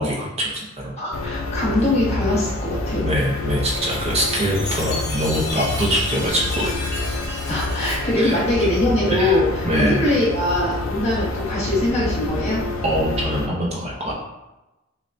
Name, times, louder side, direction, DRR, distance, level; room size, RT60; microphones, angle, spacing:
voice 1, 0.0-0.9 3.0-6.7 8.2-8.7 9.1-10.0 12.8-14.1, right 1 dB, 30° right, -3 dB, 0.7 m, -24 dB
voice 2, 1.0-3.2 7.5-12.6, left 1 dB, 30° left, -7 dB, 1.3 m, -22 dB
atmo-digital forest, 1.1-13.5, left 3 dB, 75° left, 0.5 m, -27 dB
Writing, 2.5-9.2, right 2 dB, 60° right, 1.2 m, -40 dB
Chime, 4.3-8.9, left 3 dB, 50° left, 1.0 m, -33 dB
6.5 x 2.3 x 2.6 m, 1.0 s
head